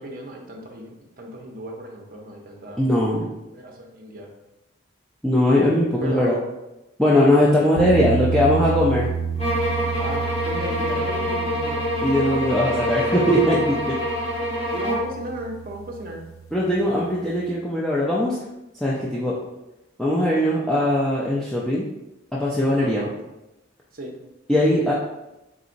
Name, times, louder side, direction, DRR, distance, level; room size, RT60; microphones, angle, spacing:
voice 1, 0.0-2.8 3.5-4.3 6.0-6.4 7.3-8.9 10.0-11.8 14.7-16.2 22.8-23.1 23.9-24.1, right 1 dB, 45° right, 1 dB, 0.6 m, -35 dB
voice 2, 2.8-3.3 5.2-6.3 7.0-9.1 12.0-14.0 16.5-18.4 18.8-19.3 20.0-21.9 22.3-23.1 24.5-24.9, left 1 dB, ahead, -7 dB, 0.4 m, -20 dB
sound 1, 7.8-16.7, right 6 dB, 85° left, 0.5 m, -30 dB
sound 2, 9.4-15.2, equal, 30° left, 1.5 m, -26 dB
4.0 x 3.8 x 2.5 m, 0.97 s
head